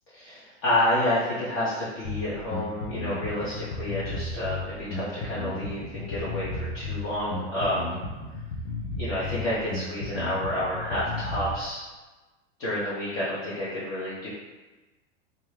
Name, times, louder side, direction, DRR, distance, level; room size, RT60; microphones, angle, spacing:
voice 1, 0.1-8.0 9.0-11.8 12.6-14.3, left 1 dB, 35° left, -9 dB, 0.8 m, -29 dB
Bass guitar, 2.0-11.6, left 2 dB, 70° left, 0.8 m, -34 dB
2.6 x 2.1 x 3.1 m, 1.2 s
hypercardioid pair, 115°, 37 cm